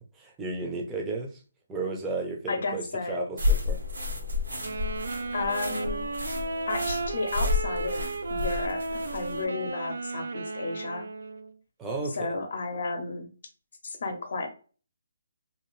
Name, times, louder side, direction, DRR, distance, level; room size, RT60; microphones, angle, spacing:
voice 1, 0.1-1.4 1.7-3.8 11.8-12.3, right 3 dB, 10° right, 1 dB, 0.6 m, -33 dB
voice 2, 2.5-3.2 5.3-6.0 6.7-8.0 8.3-11.0 12.1-13.3 13.8-14.5, left 3 dB, 60° left, 5 dB, 0.7 m, -32 dB
sound 1, 3.4-9.4, left 3 dB, 90° right, 1.3 m, -31 dB
Wind instrument woodwind instrument, 4.6-11.5, right 3 dB, 75° right, 0.3 m, -34 dB
2.7 x 2.4 x 3.0 m, 0.37 s
hypercardioid pair, 155°, 0 cm